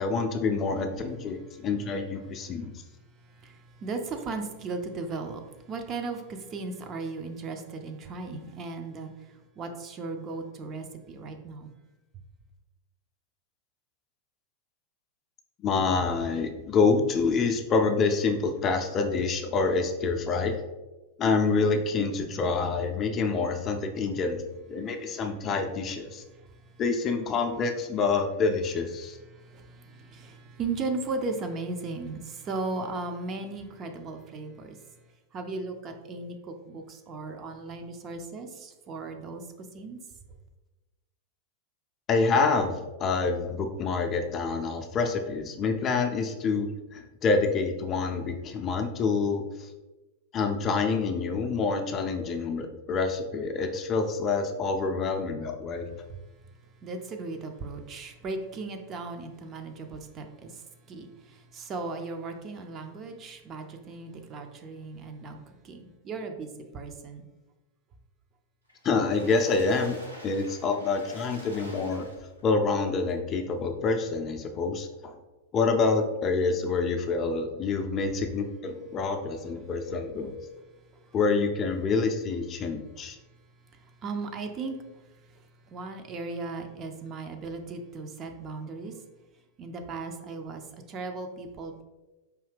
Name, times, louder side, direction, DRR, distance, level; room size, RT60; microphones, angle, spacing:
voice 1, 0.0-2.7 15.6-20.6 21.2-24.4 24.7-26.2 26.8-29.2 42.1-49.7 50.3-55.9 68.8-72.1 72.4-75.1 75.5-80.3 81.1-83.2, left 4 dB, 30° left, 5 dB, 0.4 m, -27 dB
voice 2, 3.2-11.7 24.8-24.9 26.3-26.7 29.3-34.8 35.3-39.4 39.7-40.0 56.8-65.4 65.6-67.2 81.0-81.1 83.7-84.8 85.3-89.0 89.6-91.8, right 3 dB, 30° right, 5 dB, 0.5 m, -37 dB
Water / Splash splatter, 68.7-72.5 73.1-73.2 73.5-73.6, equal, 90° right, 1.0 m, -46 dB
4.6 x 2.7 x 3.3 m, 1.1 s
figure-of-eight pair, 90°, 0 cm